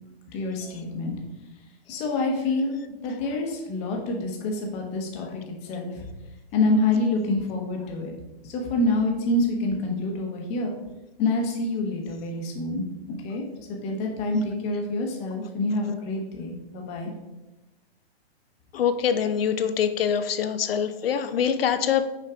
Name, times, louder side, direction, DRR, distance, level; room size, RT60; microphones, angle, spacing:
voice 1, 0.3-1.2 1.9-6.0 6.5-8.1 8.4-10.8 11.2-12.8 13.2-13.4 13.8-17.1, left 2 dB, 20° left, 1 dB, 0.9 m, -27 dB
voice 2, 18.7-22.1, left 8 dB, 65° left, 10 dB, 0.6 m, -24 dB
5.9 x 4.5 x 3.5 m, 1.0 s
hypercardioid pair, 155°, 32 cm